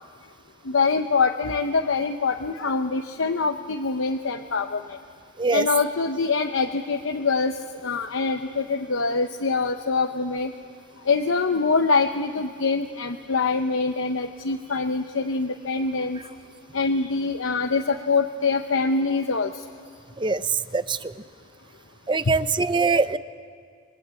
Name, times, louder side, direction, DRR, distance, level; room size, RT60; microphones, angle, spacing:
voice 1, 0.7-5.0 5.5-7.6 7.8-10.5 11.1-16.2 16.7-19.5, left 4 dB, 75° left, 5 dB, 0.9 m, -24 dB
voice 2, 22.1-23.2, right 4 dB, 25° right, 13 dB, 0.6 m, -22 dB
27.5 x 22.5 x 8.4 m, 2.1 s
head